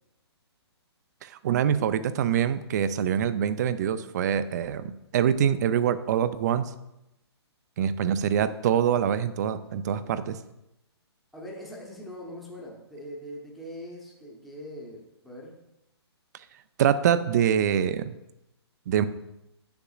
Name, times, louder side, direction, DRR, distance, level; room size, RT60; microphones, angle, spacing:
voice 1, 1.2-6.7 7.8-10.4 16.8-18.1 18.9-19.1, right 9 dB, 40° right, 13 dB, 0.4 m, -25 dB
voice 2, 11.3-15.6, equal, ahead, -4 dB, 0.8 m, -42 dB
8.8 x 6.8 x 2.4 m, 0.88 s
hypercardioid pair, 150°, 14 cm